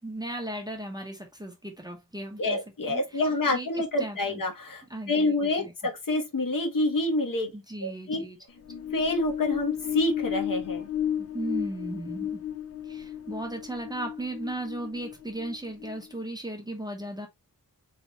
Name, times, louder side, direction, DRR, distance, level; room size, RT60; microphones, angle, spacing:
voice 1, 0.0-2.6 2.9-3.2 3.5-4.4 4.9-5.7 7.5-8.4 11.2-12.4 12.8-17.3, right 1 dB, 10° right, 0.9 m, -36 dB
voice 2, 2.4-4.8 5.1-7.5 7.8-8.2 8.9-10.9, left 2 dB, 60° left, 1.3 m, -27 dB
sound 1, 8.5-16.2, left 10 dB, 40° left, 0.5 m, -34 dB
3.8 x 3.3 x 2.9 m
wide cardioid pair, 140°, 38 cm